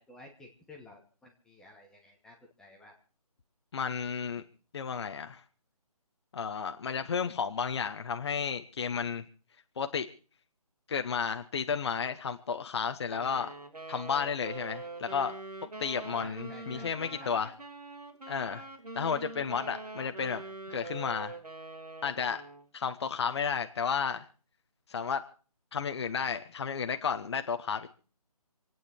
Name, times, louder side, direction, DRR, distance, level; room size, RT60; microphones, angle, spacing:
voice 1, 0.0-3.0 16.2-17.5 19.4-19.6, left 2 dB, 5° left, 0 dB, 1.1 m, -53 dB
voice 2, 3.7-4.4 4.7-5.4 6.3-9.2 9.8-10.1 10.9-13.5 13.9-15.3 15.8-17.5 18.3-18.6 18.9-20.4 20.7-21.4 22.0-22.4 22.7-24.3 24.9-25.2 25.7-27.9, left 6 dB, 45° left, 7 dB, 1.0 m, -32 dB
Wind instrument woodwind instrument, 13.1-22.7, right 2 dB, 85° right, 2.8 m, -44 dB
27.5 x 9.3 x 4.4 m, 0.40 s
figure-of-eight pair, 160°, 20 cm